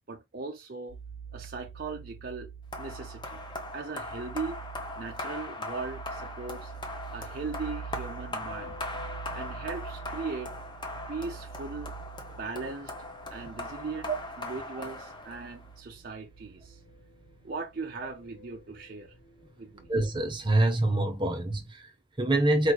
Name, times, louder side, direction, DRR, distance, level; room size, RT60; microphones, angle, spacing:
voice 1, 0.1-1.0 1.3-2.5 2.8-3.4 3.7-4.6 5.0-6.7 7.1-8.8 9.3-10.5 11.1-11.9 12.4-12.9 13.3-14.1 14.4-16.8 17.4-19.2 19.6-19.9, right 4 dB, 50° right, 0.6 m, -38 dB
sound 1, 0.9-20.5, right 5 dB, 45° left, 1.1 m, -46 dB
sound 2, 2.7-15.7, left 2 dB, 25° left, 0.9 m, -40 dB
voice 2, 19.9-22.7, right 1 dB, 25° right, 0.9 m, -26 dB
4.6 x 3.1 x 2.3 m
head